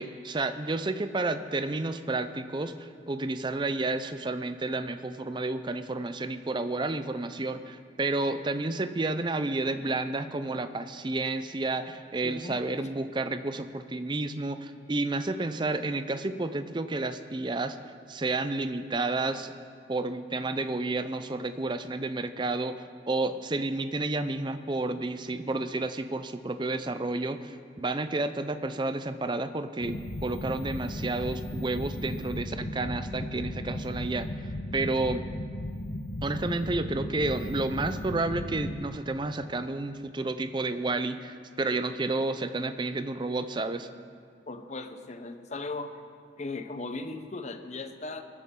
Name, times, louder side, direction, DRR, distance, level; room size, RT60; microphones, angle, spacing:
voice 1, 0.0-17.8 18.1-19.5 19.9-22.7 23.1-34.3 34.7-35.2 36.2-43.9, right 2 dB, 25° right, 10 dB, 0.5 m, -31 dB
voice 2, 12.2-12.6 44.5-45.9 46.4-48.2, left 3 dB, 40° left, 8 dB, 0.8 m, -37 dB
sound 1, 29.8-38.8, left 1 dB, 80° left, 0.9 m, -36 dB
22.0 x 9.7 x 3.8 m, 2.3 s
head